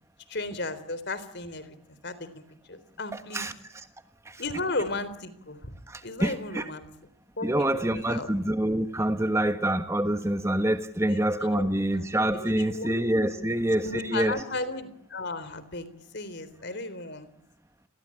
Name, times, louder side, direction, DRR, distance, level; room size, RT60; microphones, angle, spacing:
voice 1, 0.3-3.5 4.4-5.7 6.0-6.8 7.4-8.3 11.1-12.0 12.3-13.5 13.8-15.9 16.1-17.3, left 2 dB, 50° left, 14 dB, 3.8 m, -35 dB
voice 2, 3.3-3.8 4.2-4.4 5.9-6.6 7.4-14.4, right 1 dB, 15° right, 9 dB, 1.3 m, -26 dB
30.0 x 22.0 x 8.8 m, 0.76 s
head